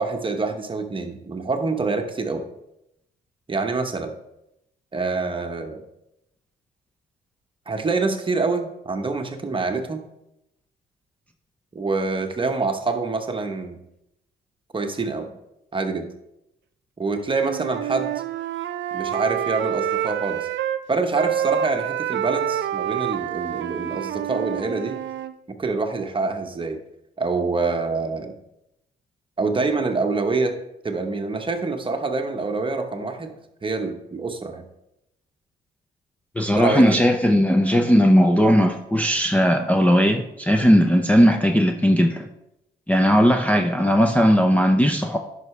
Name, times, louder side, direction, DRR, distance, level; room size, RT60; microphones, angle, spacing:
voice 1, 0.0-2.4 3.5-4.1 4.9-5.8 7.7-10.0 11.7-13.8 14.7-15.3 15.7-16.1 17.0-18.1 18.9-20.5 20.9-25.0 25.5-26.8 27.2-28.3 29.4-30.6 30.8-33.3 33.6-34.6 36.5-37.0, right 3 dB, 25° right, 5 dB, 1.0 m, -26 dB
Wind instrument woodwind instrument, 17.3-20.8 21.1-25.3, right 11 dB, 65° right, 0.6 m, -27 dB
voice 2, 36.4-42.3 42.9-45.2, equal, 5° left, 3 dB, 0.6 m, -17 dB
10.5 x 5.6 x 3.3 m, 0.85 s
cardioid pair, 90°, 20 cm